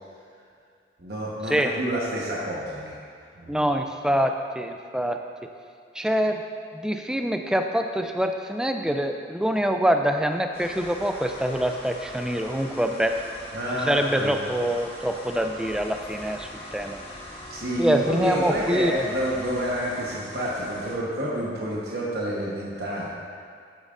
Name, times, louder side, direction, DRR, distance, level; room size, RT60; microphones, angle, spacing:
voice 1, 1.0-3.0 3.3-3.7 13.5-14.4 17.5-23.1, right 1 dB, 65° right, -5 dB, 1.2 m, -29 dB
voice 2, 3.5-5.2 6.0-6.4 6.7-13.1 13.7-17.0 17.8-19.0, equal, 5° right, 5 dB, 0.3 m, -25 dB
sound 1, 10.5-21.0, left 1 dB, 35° left, 1.1 m, -41 dB
9.2 x 8.6 x 2.5 m, 2.3 s
head